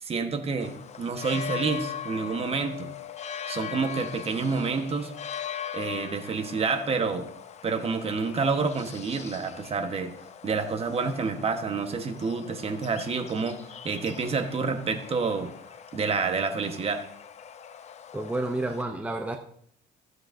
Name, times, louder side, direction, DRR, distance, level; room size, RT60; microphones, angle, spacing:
voice 1, 0.0-2.9 3.5-5.1 5.7-7.3 7.6-10.1 10.4-13.6 13.8-15.5 15.9-17.0, right 4 dB, 35° right, 7 dB, 1.2 m, -28 dB
sound 1, 0.6-18.8, left 9 dB, 40° left, 0.6 m, -40 dB
voice 2, 18.1-19.4, right 2 dB, 10° right, 4 dB, 0.7 m, -30 dB
15.0 x 7.8 x 2.6 m, 0.69 s
cardioid pair, 110°, 17 cm